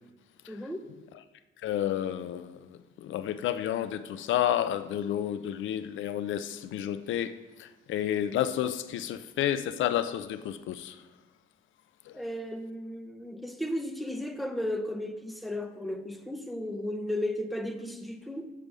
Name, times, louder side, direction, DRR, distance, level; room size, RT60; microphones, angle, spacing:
voice 1, 0.5-0.8 12.1-18.5, left 1 dB, ahead, 0.8 m, -34 dB
voice 2, 1.6-11.0 12.1-12.2, left 11 dB, 75° left, 0.5 m, -31 dB
6.8 x 5.0 x 6.2 m
cardioid pair, 90°, 20 cm